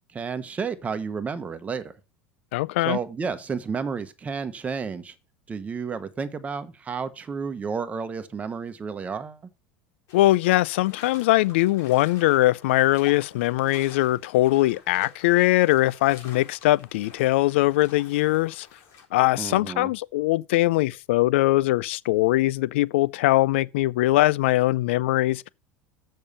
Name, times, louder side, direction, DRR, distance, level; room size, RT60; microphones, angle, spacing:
voice 1, 0.1-1.9 2.8-5.1 5.5-9.4 19.3-19.9, right 5 dB, 20° right, 1.1 m, -31 dB
voice 2, 2.5-3.0 10.1-18.7 19.1-25.5, left 17 dB, 80° left, 0.4 m, -21 dB
sound 1, 10.1-19.0, left 6 dB, 55° left, 3.8 m, -49 dB
7.1 x 5.4 x 6.8 m
supercardioid pair, 105°, 6 cm